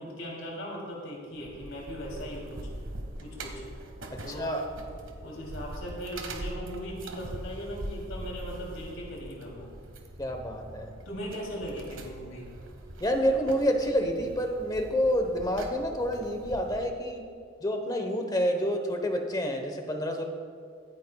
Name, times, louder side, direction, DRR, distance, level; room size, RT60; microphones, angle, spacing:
voice 1, 0.0-2.7 3.2-3.6 4.2-4.6 5.2-9.7 11.0-12.5, equal, 80° left, -3 dB, 3.0 m, -39 dB
sound 1, 1.3-16.8, right 1 dB, 70° right, 1.4 m, -42 dB
voice 2, 4.1-4.7 10.2-10.9 13.0-17.3 17.6-20.2, equal, 20° left, 5 dB, 1.0 m, -28 dB
24.5 x 9.2 x 2.3 m, 2.2 s
head